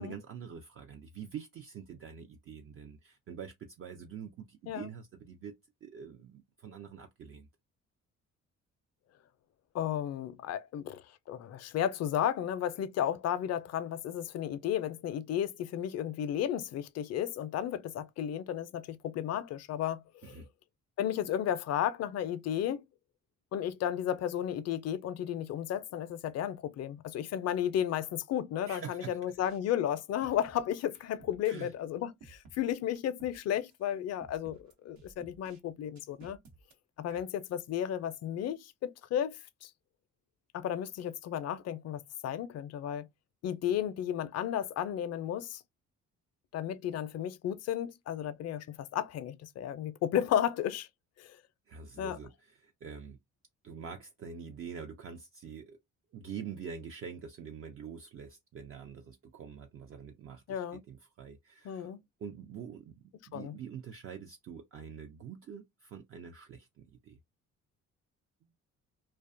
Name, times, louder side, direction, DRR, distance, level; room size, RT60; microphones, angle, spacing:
voice 1, 0.0-5.5 5.8-7.5 20.2-20.5 28.7-29.4 31.5-31.7 37.1-37.2 51.7-53.2 53.6-55.8 56.1-61.9 62.2-63.0 63.3-67.2, right 7 dB, 45° right, 0.4 m, -45 dB
voice 2, 9.7-11.0 11.3-20.3 21.0-22.8 23.5-34.6 34.8-36.4 37.0-39.7 40.5-43.1 43.4-45.6 46.5-50.9 51.2-51.3 52.0-52.2 60.5-60.8 61.6-62.0 63.3-63.6, left 10 dB, 55° left, 0.4 m, -33 dB
sound 1, 29.3-29.6 29.9-31.5 32.2-33.4 33.7-33.8 34.2-35.6 35.9-36.7, right 4 dB, 70° right, 0.9 m, -56 dB
2.3 x 2.2 x 2.5 m
cardioid pair, 90°, 30 cm